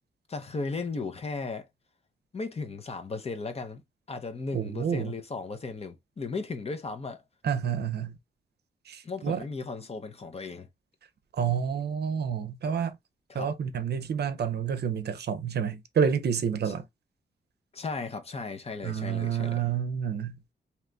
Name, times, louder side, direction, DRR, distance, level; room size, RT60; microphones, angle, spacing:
voice 1, 0.3-1.7 2.3-3.8 4.1-7.2 9.0-10.7 13.3-13.5 16.6-16.7 17.7-19.7, left 4 dB, 35° left, 0.7 m, -36 dB
voice 2, 4.5-5.1 7.4-8.1 8.9-9.4 11.4-13.0 13.3-16.8 18.8-20.3, right 7 dB, 60° right, 0.6 m, -29 dB
3.9 x 2.9 x 3.3 m
wide cardioid pair, 175°, 19 cm